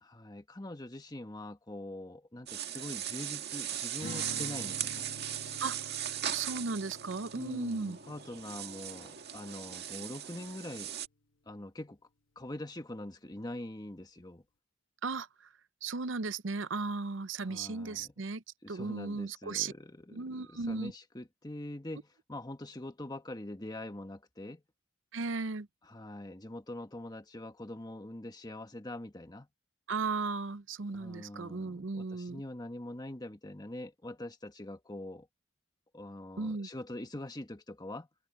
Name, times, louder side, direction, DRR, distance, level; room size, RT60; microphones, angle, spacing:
voice 1, 0.0-5.1 7.3-10.9 11.4-12.0 12.3-14.4 17.4-18.1 18.6-24.6 25.8-29.5 30.9-35.3 35.9-38.1, left 1 dB, 20° left, 1.4 m, -44 dB
sound 1, 2.5-11.1, right 10 dB, 55° right, 2.0 m, -39 dB
Strum, 4.0-10.4, left 2 dB, 80° left, 1.3 m, -49 dB
voice 2, 6.3-8.0 15.0-15.5 15.8-18.4 18.7-19.7 20.1-20.9 25.1-25.7 29.9-32.4 36.4-36.7, right 4 dB, 75° right, 0.7 m, -36 dB
head